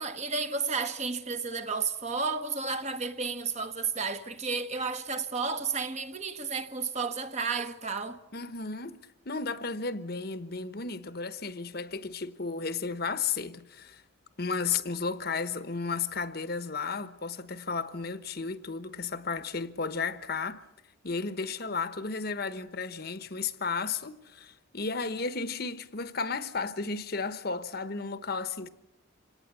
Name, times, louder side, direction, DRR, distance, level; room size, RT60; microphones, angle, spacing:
voice 1, 0.0-8.2, right 4 dB, 35° right, 1.3 m, -32 dB
voice 2, 8.3-9.0 9.2-14.0 14.4-20.6 21.0-28.7, left 4 dB, 50° left, 1.1 m, -33 dB
26.0 x 18.5 x 8.4 m
head